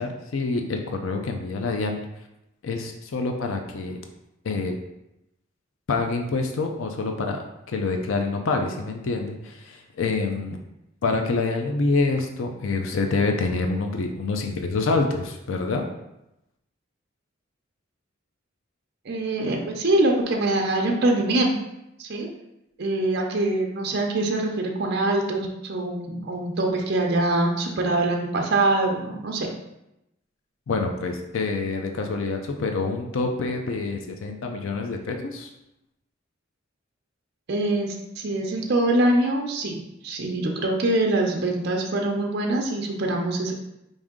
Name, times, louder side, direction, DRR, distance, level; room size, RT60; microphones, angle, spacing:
voice 1, 0.0-2.0 2.6-4.0 4.4-4.7 5.9-10.6 11.0-15.8 30.7-35.5, left 3 dB, 85° left, 4 dB, 0.5 m, -26 dB
voice 2, 19.1-21.5 22.0-22.3 22.8-29.5 37.5-43.5, right 2 dB, 55° right, 1 dB, 0.6 m, -24 dB
4.8 x 2.6 x 3.6 m, 0.87 s
head